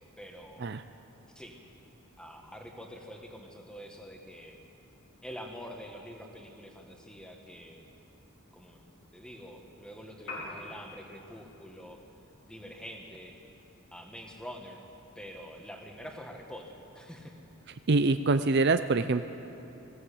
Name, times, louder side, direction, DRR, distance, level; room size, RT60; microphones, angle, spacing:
voice 1, 0.2-0.7 1.3-1.6 2.2-4.6 5.2-7.8 8.5-8.8 9.1-12.0 12.4-13.4 13.9-14.8 15.2-17.3, equal, 5° left, 2 dB, 1.8 m, -46 dB
Piano, 10.2-18.2, left 2 dB, 80° left, 5.3 m, -50 dB
voice 2, 17.9-19.2, right 3 dB, 50° right, 10 dB, 0.5 m, -25 dB
20.0 x 16.5 x 8.7 m, 3.0 s
head